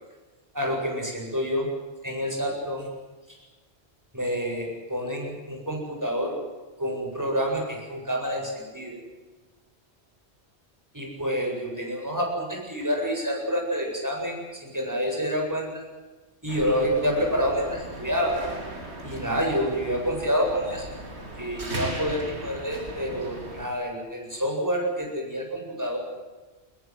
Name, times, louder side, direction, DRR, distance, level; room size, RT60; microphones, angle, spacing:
voice 1, 0.5-1.7 2.0-2.9 4.1-6.4 6.8-9.0 10.9-15.7 16.4-18.4 19.0-20.9 21.4-26.0, equal, 15° right, 0 dB, 8.1 m, -28 dB
sound 1, 16.5-23.7, right 1 dB, 75° right, 4.1 m, -38 dB
24.5 x 20.5 x 8.0 m, 1.3 s
omnidirectional pair, 1.1 m